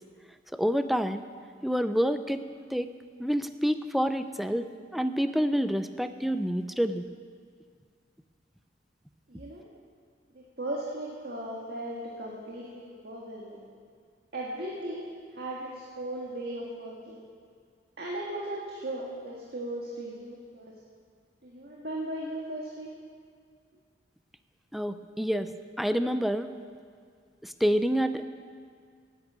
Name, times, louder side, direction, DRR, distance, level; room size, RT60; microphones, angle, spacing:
voice 1, 0.5-1.2 1.6-2.4 2.7-2.9 3.2-7.0 24.7-25.5 25.8-26.5 27.4-28.2, equal, ahead, 10 dB, 0.4 m, -28 dB
voice 2, 9.3-9.6 10.3-13.6 14.3-15.0 15.3-17.2 18.0-20.7 21.4-22.9, right 1 dB, 60° right, -3 dB, 1.7 m, -37 dB
10.5 x 9.3 x 8.7 m, 2.1 s
head